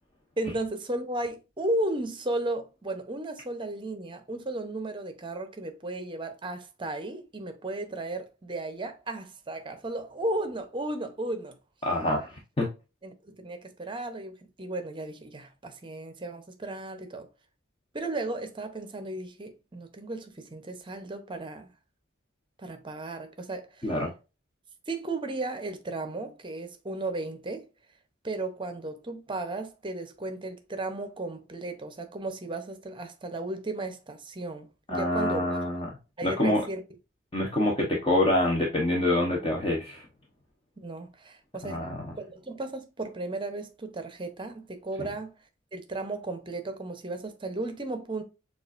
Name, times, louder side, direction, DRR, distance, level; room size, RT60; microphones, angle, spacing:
voice 1, 0.4-11.6 13.0-17.3 17.9-21.7 22.6-23.9 24.9-27.7 28.2-35.4 36.2-36.8 40.8-41.9 42.2-45.3 45.7-48.2, right 2 dB, 25° right, 0.7 m, -35 dB
voice 2, 11.8-12.7 23.8-24.1 34.9-35.9 36.2-36.6 37.3-40.0 41.6-42.1, left 1 dB, 25° left, 0.8 m, -26 dB
6.8 x 2.5 x 2.4 m
head